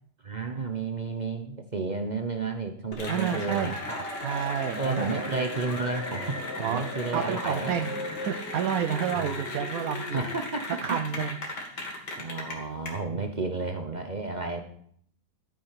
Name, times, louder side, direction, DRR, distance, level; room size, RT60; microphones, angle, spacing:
voice 1, 0.2-4.1 4.8-7.7 9.1-9.4 10.0-11.0 12.2-14.6, right 3 dB, 35° right, 5 dB, 0.8 m, -32 dB
Cheering / Applause, 2.9-12.9, left 2 dB, 75° left, 2.7 m, -35 dB
voice 2, 3.1-3.8 4.2-5.4 6.6-6.9 7.1-7.9 8.2-10.3 10.8-11.4 13.1-13.3, right 8 dB, 65° right, 8 dB, 1.0 m, -30 dB
12.0 x 9.1 x 5.8 m, 0.65 s
omnidirectional pair, 1.9 m